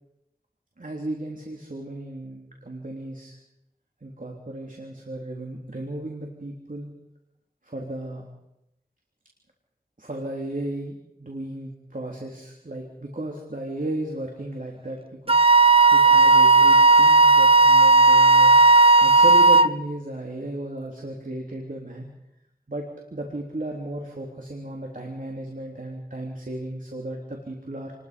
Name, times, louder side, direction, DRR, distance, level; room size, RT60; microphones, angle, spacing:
voice 1, 0.8-3.4 4.0-6.9 7.6-8.3 10.0-10.9 11.2-15.4 15.7-18.6 19.0-22.1 22.7-27.9, right 1 dB, 60° right, 0 dB, 3.5 m, -34 dB
Wind instrument woodwind instrument, 15.3-19.7, right 3 dB, 35° right, 0.9 m, -14 dB
29.0 x 21.5 x 5.3 m, 0.86 s
wide cardioid pair, 45°, 16 cm